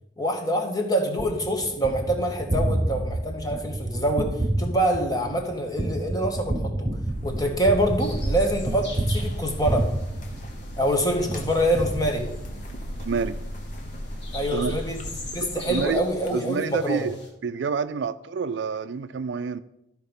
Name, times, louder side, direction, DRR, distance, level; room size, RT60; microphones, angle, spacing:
voice 1, 0.2-6.9 7.2-9.9 10.8-12.3 14.3-17.1, right 1 dB, 20° left, 3 dB, 1.2 m, -25 dB
Gunshot gunfire, 1.2-10.9 11.3-12.7, right 1 dB, 25° right, 0.6 m, -29 dB
sound 1, 6.9-16.3, equal, 40° left, 1.0 m, -36 dB
sound 2, 8.0-17.3, left 2 dB, 65° left, 2.2 m, -44 dB
voice 2, 13.0-13.4 14.5-14.8 15.4-16.0 16.3-17.2 17.4-19.6, right 5 dB, 70° right, 14 dB, 0.4 m, -28 dB
13.0 x 4.7 x 5.3 m, 0.86 s
head